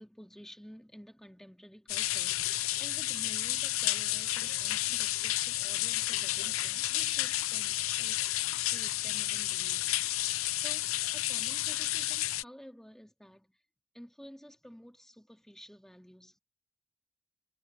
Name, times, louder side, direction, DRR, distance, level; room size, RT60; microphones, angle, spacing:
voice 1, 0.0-8.2 8.7-10.0 10.5-10.9 11.1-13.5 13.9-16.4, equal, ahead, 2.2 m, -52 dB
sound 1, 1.9-12.4, left 15 dB, 80° left, 0.6 m, -31 dB
head